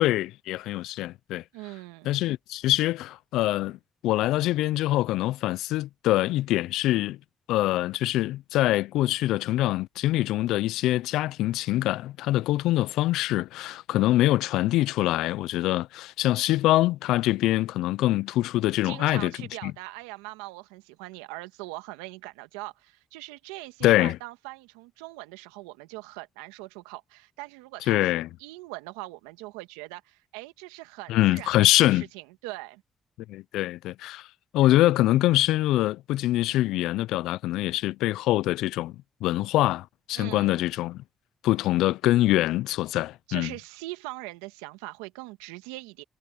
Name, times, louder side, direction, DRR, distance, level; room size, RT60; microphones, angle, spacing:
voice 1, 0.0-1.4 2.0-3.8 4.0-7.2 7.5-19.3 19.6-19.7 23.8-24.2 27.9-28.3 31.1-32.0 33.3-34.3 34.5-41.0 41.4-43.5, left 16 dB, 80° left, 0.5 m, -24 dB
voice 2, 1.5-2.1 18.8-32.8 40.1-40.6 43.3-46.0, right 20 dB, 85° right, 1.6 m, -41 dB
hypercardioid pair, 45°, 0 cm